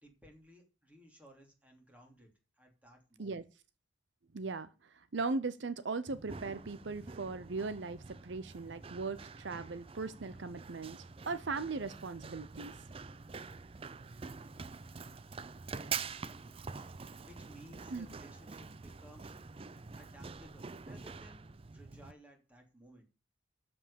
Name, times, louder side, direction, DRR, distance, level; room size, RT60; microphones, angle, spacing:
voice 1, 0.0-2.3 2.6-3.5 16.7-16.9 17.2-19.5 20.0-23.0, equal, 5° right, 2.9 m, -58 dB
voice 2, 4.3-12.8 17.9-18.1, right 3 dB, 70° right, 0.7 m, -39 dB
Run, 6.1-22.1, right 5 dB, 30° right, 0.4 m, -46 dB
13.0 x 5.4 x 6.9 m
head